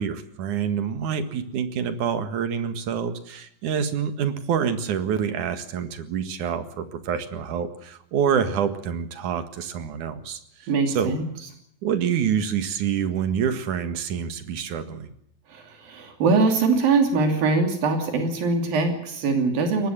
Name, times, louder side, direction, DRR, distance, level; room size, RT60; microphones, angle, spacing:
voice 1, 0.0-11.2 11.8-15.1, right 7 dB, 65° right, 10 dB, 3.1 m, -27 dB
voice 2, 10.7-11.2 15.5-19.9, right 4 dB, 85° right, 5 dB, 4.7 m, -22 dB
22.5 x 18.5 x 7.5 m, 0.73 s
omnidirectional pair, 4.0 m